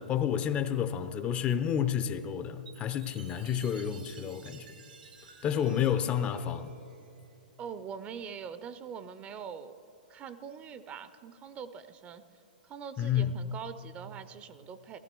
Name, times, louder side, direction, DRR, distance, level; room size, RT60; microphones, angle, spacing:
voice 1, 0.0-4.7 5.4-6.8 13.0-13.3, left 9 dB, 25° left, 0.6 m, -30 dB
Chime, 2.7-7.3, right 6 dB, 75° right, 1.3 m, -54 dB
voice 2, 7.6-9.8 10.1-12.2 12.6-15.0, right 7 dB, 25° right, 0.6 m, -43 dB
17.0 x 13.5 x 4.6 m
hypercardioid pair, 120°, 5 cm